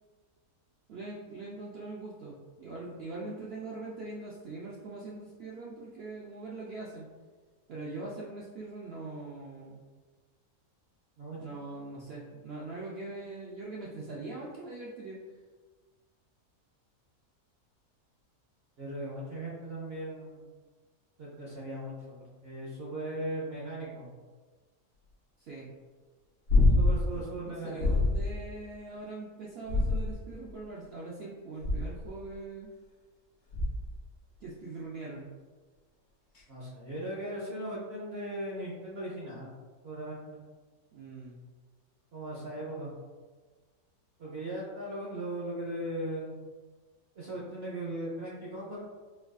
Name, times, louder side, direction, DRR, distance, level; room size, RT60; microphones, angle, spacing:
voice 1, 0.9-7.1 7.7-9.8 11.4-15.2 25.4-25.7 27.1-32.7 34.4-35.3 40.9-41.4, right 3 dB, 90° right, -5 dB, 0.5 m, -42 dB
voice 2, 11.2-11.6 18.8-20.5 21.2-24.1 26.8-28.0 36.5-39.5 39.8-40.4 42.1-42.9 44.2-46.4 47.2-48.8, right 1 dB, 55° right, -5 dB, 0.8 m, -38 dB
sound 1, 26.5-27.1 27.8-28.3 29.6-30.4 31.6-32.1 33.5-34.0 36.3-36.4, left 2 dB, 55° left, 1.2 m, -25 dB
4.6 x 2.4 x 2.3 m, 1.4 s
omnidirectional pair, 1.6 m